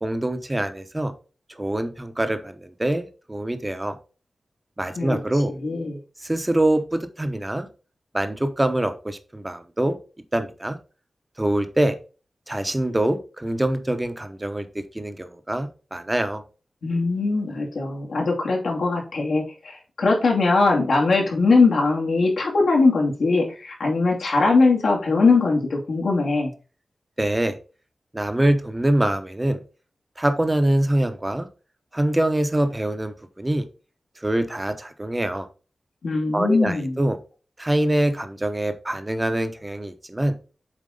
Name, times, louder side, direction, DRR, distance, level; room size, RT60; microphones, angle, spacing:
voice 1, 0.0-1.1 1.6-4.0 4.8-5.5 6.2-7.7 8.1-10.0 10.3-10.8 11.4-11.9 12.5-16.4 27.2-27.6 28.1-29.6 30.2-31.5 31.9-33.6 34.2-35.5 36.3-37.2 37.6-40.4, right 1 dB, 15° right, 9 dB, 0.9 m, -24 dB
voice 2, 5.6-6.0 16.8-26.5 36.0-37.0, left 3 dB, 85° left, -1 dB, 2.4 m, -21 dB
7.6 x 4.4 x 3.8 m, 0.35 s
wide cardioid pair, 115°, 0 cm